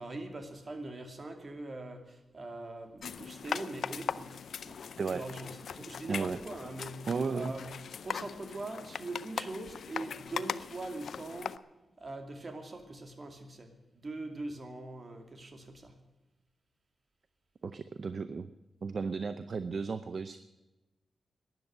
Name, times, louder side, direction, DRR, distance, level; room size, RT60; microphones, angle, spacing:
voice 1, 0.0-4.8 5.1-11.6 12.0-16.0, right 2 dB, 40° right, 5 dB, 2.4 m, -42 dB
sound 1, 3.0-11.6, left 7 dB, 80° left, 0.5 m, -40 dB
voice 2, 7.1-7.5 17.6-18.5 18.8-20.4, right 4 dB, 55° right, 12 dB, 0.6 m, -34 dB
12.5 x 11.0 x 9.2 m, 1.1 s
wide cardioid pair, 95°, 0 cm